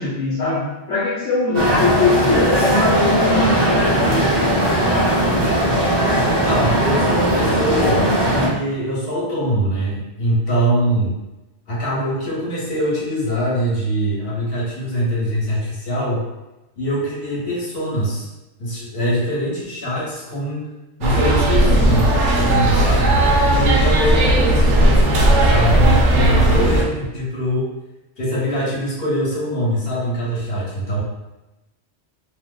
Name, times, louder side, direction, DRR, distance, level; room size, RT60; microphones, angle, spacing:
voice 1, 0.0-5.2, left 3 dB, 80° left, -6 dB, 1.1 m, -21 dB
sound 1, 1.5-8.5, right 1 dB, 35° right, 0.4 m, -18 dB
voice 2, 6.2-11.2 11.7-16.2 16.8-18.3 18.6-20.6 21.0-22.1 22.3-23.2 23.5-27.7 28.2-31.0, equal, 55° left, -7 dB, 1.3 m, -23 dB
sound 2, 21.0-26.8, right 1 dB, 80° right, 0.9 m, -15 dB
3.0 x 2.0 x 3.7 m, 0.99 s
omnidirectional pair, 1.2 m